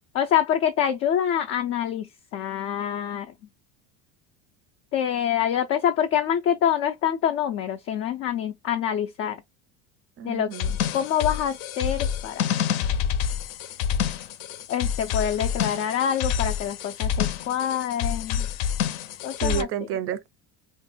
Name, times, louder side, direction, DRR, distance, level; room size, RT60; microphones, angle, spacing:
voice 1, 0.1-3.3 4.9-9.4 10.2-10.5 10.9-12.5 14.7-18.5 19.2-19.7, left 9 dB, 40° left, 0.4 m, -26 dB
voice 2, 10.2-10.8 19.4-20.3, right 9 dB, 40° right, 0.5 m, -30 dB
sound 1, 10.5-19.6, left 8 dB, 70° left, 0.7 m, -28 dB
2.5 x 2.2 x 4.0 m
cardioid pair, 140°, 37 cm